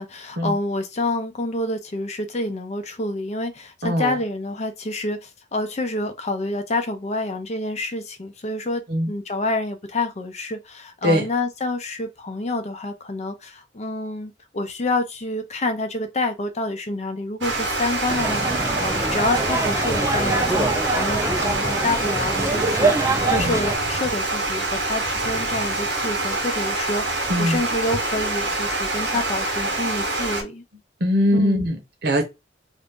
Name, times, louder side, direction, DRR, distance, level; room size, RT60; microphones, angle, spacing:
voice 1, 0.0-30.6 31.3-31.7, left 2 dB, 40° left, 0.6 m, -28 dB
voice 2, 3.8-4.2 8.9-9.1 11.0-11.2 23.4-23.5 27.3-27.6 31.0-32.2, equal, 60° right, 1.0 m, -21 dB
Water, 17.4-30.4, right 2 dB, 85° right, 1.1 m, -26 dB
sound 1, 18.1-23.8, right 2 dB, 15° right, 0.4 m, -24 dB
2.6 x 2.5 x 3.6 m
head